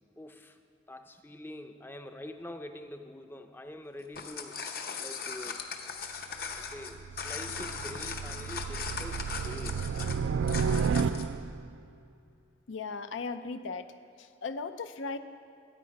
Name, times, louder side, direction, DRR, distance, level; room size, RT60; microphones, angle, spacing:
voice 1, 0.2-0.6 0.9-4.6 5.0-5.6 6.5-10.0, left 1 dB, 10° left, 7 dB, 0.5 m, -45 dB
sound 1, 4.0-11.3, left 5 dB, 50° left, 0.8 m, -39 dB
sound 2, 6.4-11.7, right 6 dB, 80° right, 0.3 m, -32 dB
voice 2, 12.7-13.9 14.2-15.2, left 4 dB, 85° left, 10 dB, 0.5 m, -37 dB
12.5 x 8.6 x 5.2 m, 2.6 s
head